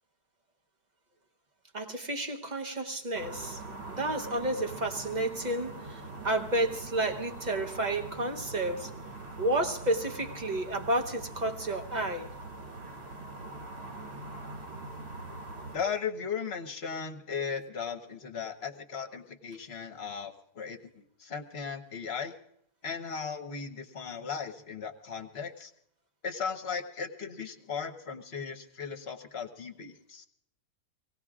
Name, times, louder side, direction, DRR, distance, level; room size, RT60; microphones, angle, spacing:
voice 1, 1.7-3.6 3.9-8.9 9.4-12.3, right 1 dB, 30° right, 0.9 m, -31 dB
sound 1, 3.1-15.8, right 2 dB, 75° right, 2.3 m, -43 dB
voice 2, 15.7-20.8 21.2-22.3 22.8-25.7 26.2-30.3, left 6 dB, 45° left, 1.2 m, -37 dB
25.5 x 18.0 x 2.4 m
omnidirectional pair, 1.7 m